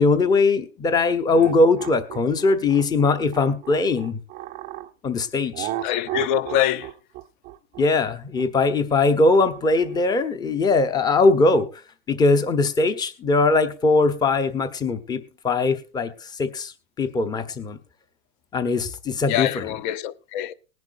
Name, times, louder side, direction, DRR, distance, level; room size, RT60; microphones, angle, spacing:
voice 1, 0.0-4.2 5.0-5.7 7.8-11.7 12.1-17.8 18.5-19.6, left 3 dB, 10° left, 0.9 m, -21 dB
sound 1, 1.3-4.9 5.5-10.0, right 14 dB, 20° right, 0.6 m, -35 dB
voice 2, 5.8-6.9 19.3-20.5, left 11 dB, 35° left, 0.7 m, -24 dB
19.5 x 10.5 x 2.6 m
hypercardioid pair, 145°, 40 cm